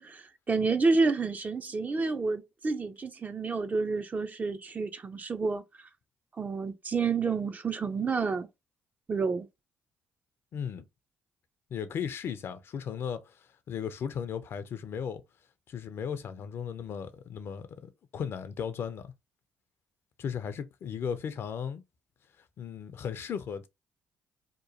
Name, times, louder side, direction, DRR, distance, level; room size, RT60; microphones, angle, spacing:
voice 1, 0.0-5.6 6.4-8.5 9.1-9.5, right 4 dB, 35° right, 0.5 m, -29 dB
voice 2, 10.5-10.8 11.7-15.2 15.7-19.1 20.2-21.8 22.6-23.7, left 7 dB, 55° left, 0.4 m, -36 dB
2.9 x 2.1 x 2.7 m
hypercardioid pair, 50°, 5 cm